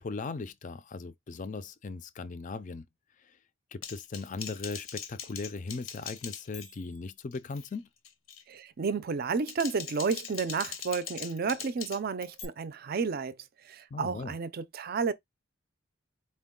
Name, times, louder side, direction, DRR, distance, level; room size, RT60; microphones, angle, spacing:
voice 1, 0.0-2.9 3.2-3.3 3.7-7.9 13.9-14.3, left 4 dB, 40° left, 0.4 m, -38 dB
Typing, 3.8-7.0 7.3-7.7 8.0-8.4 9.2-12.4, left 7 dB, 75° left, 0.8 m, -42 dB
voice 2, 8.5-13.4 13.6-15.1, right 5 dB, 45° right, 0.4 m, -31 dB
4.5 x 2.2 x 3.7 m
head